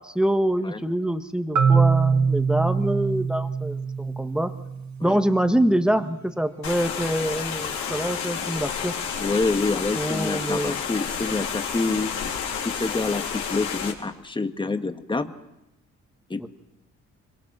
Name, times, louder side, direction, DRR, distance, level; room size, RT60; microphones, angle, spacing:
voice 1, 0.0-4.5 5.0-8.9 9.9-10.8 16.4-16.5, equal, 5° right, 8 dB, 1.4 m, -25 dB
Marimba xylophone, 1.6-5.4, right 5 dB, 65° right, 1.7 m, -23 dB
sound 1, 6.6-13.9, left 7 dB, 75° left, 3.7 m, -30 dB
voice 2, 9.2-12.1 12.6-15.3 16.3-16.5, left 3 dB, 15° left, 7 dB, 1.4 m, -27 dB
26.0 x 23.0 x 6.1 m, 0.93 s
cardioid pair, 90°, 30 cm